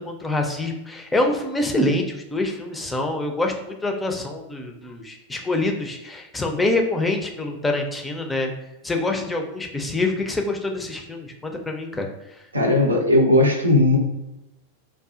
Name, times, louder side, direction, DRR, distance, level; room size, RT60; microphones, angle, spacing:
voice 1, 0.0-8.5 8.8-12.4, left 2 dB, 10° left, 2 dB, 0.4 m, -25 dB
voice 2, 12.5-14.0, left 1 dB, 80° right, 1 dB, 0.5 m, -17 dB
4.7 x 2.3 x 2.4 m, 0.93 s
figure-of-eight pair, 90°, 0 cm